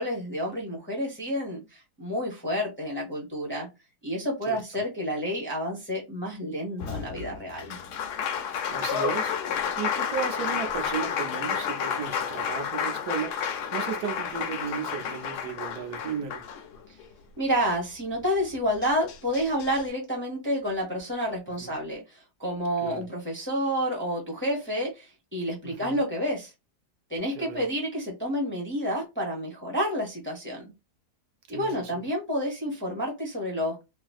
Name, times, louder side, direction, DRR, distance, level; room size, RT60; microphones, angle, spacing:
voice 1, 0.0-3.7 4.0-7.8 17.4-26.5 27.1-30.6 31.5-33.8, equal, 10° left, 0.8 m, -29 dB
Applause, 6.8-17.1 18.4-18.5 18.8-19.8, left 7 dB, 75° left, 1.2 m, -31 dB
voice 2, 8.7-9.3 9.8-16.4 21.6-21.7 22.8-23.1 25.6-26.0 27.3-27.7 31.5-32.1, right 7 dB, 75° right, 1.1 m, -35 dB
3.2 x 2.5 x 2.3 m
omnidirectional pair, 1.7 m